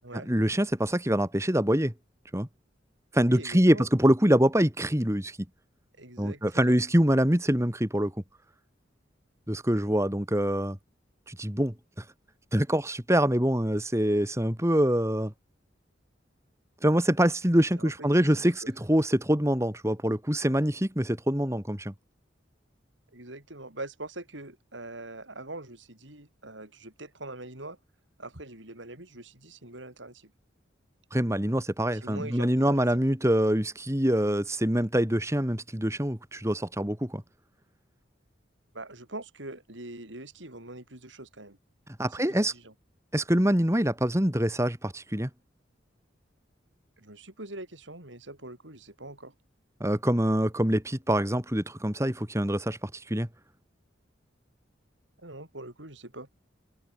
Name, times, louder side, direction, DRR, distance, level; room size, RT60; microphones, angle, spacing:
voice 1, 0.3-1.9 2.3-2.5 3.1-5.4 6.2-8.1 9.5-10.8 11.3-11.7 12.5-15.3 16.8-21.9 31.1-37.2 42.0-42.5 43.1-45.3 49.8-53.3, equal, 15° right, 2.8 m, -25 dB
voice 2, 3.3-3.9 6.0-6.8 17.8-17.9 18.2-18.7 23.1-27.8 28.2-30.3 31.9-32.9 38.7-41.6 42.1-42.7 47.0-49.3 55.2-56.3, right 2 dB, 80° right, 7.5 m, -43 dB
head